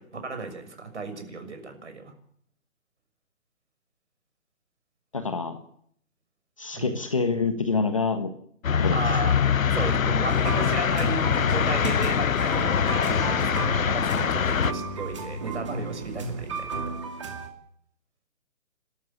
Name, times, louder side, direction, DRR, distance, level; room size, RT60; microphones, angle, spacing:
voice 1, 0.0-2.1 6.7-7.0 8.9-9.4 9.7-16.8, right 3 dB, 55° right, 7 dB, 6.5 m, -35 dB
voice 2, 5.1-5.6 6.6-8.3 8.8-9.4, left 4 dB, 25° left, 8 dB, 1.3 m, -27 dB
sound 1, 8.6-14.7, left 7 dB, 85° left, 0.9 m, -23 dB
sound 2, 10.2-17.5, right 3 dB, 20° right, 2.4 m, -34 dB
sound 3, 11.1-16.9, right 1 dB, 5° right, 4.5 m, -43 dB
28.5 x 13.5 x 8.5 m, 0.67 s
hypercardioid pair, 180°, 40 cm